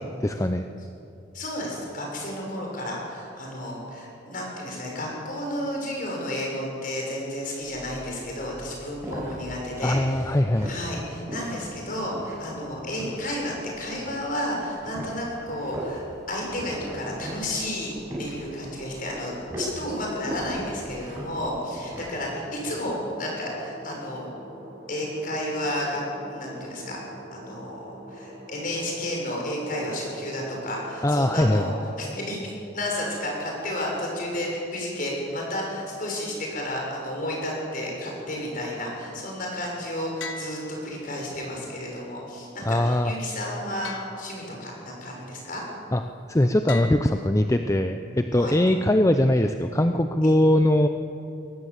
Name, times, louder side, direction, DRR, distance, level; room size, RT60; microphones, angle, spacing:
voice 1, 0.2-0.7 9.8-10.7 31.0-31.7 42.6-43.1 45.9-46.0 46.3-50.9, left 1 dB, 15° left, 7 dB, 0.6 m, -21 dB
voice 2, 1.3-10.3 10.6-17.9 18.2-24.3 24.9-26.0 26.3-27.0 27.3-45.6 48.3-48.6 50.2-50.3, left 1 dB, 45° left, -1 dB, 6.7 m, -32 dB
sound 1, 7.6-22.1, equal, 15° right, 6.4 m, -39 dB
sound 2, 16.3-31.7, right 1 dB, 90° right, 5.3 m, -44 dB
sound 3, 40.2-41.5 43.8-44.9 46.7-47.9, left 3 dB, 85° left, 1.5 m, -41 dB
22.5 x 17.5 x 8.2 m, 2.7 s
head